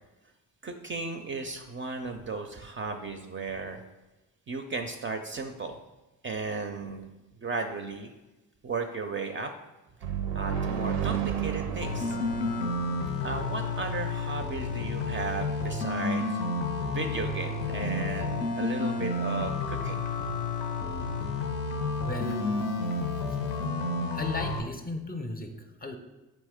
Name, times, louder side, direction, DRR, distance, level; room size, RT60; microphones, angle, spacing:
voice 1, 0.6-3.8 4.5-5.8 6.2-7.1 7.4-8.1 8.6-9.5 10.3-12.2 13.2-16.4 16.9-20.0, right 4 dB, 30° right, 5 dB, 0.4 m, -35 dB
sound 1, 10.0-13.8, right 8 dB, 90° right, 0.5 m, -32 dB
sound 2, 11.8-24.6, left 3 dB, 85° left, 0.5 m, -31 dB
voice 2, 22.0-22.8 24.1-26.0, left 2 dB, 25° left, 5 dB, 0.5 m, -36 dB
4.3 x 3.0 x 3.5 m, 1.1 s
supercardioid pair, 55°, 39 cm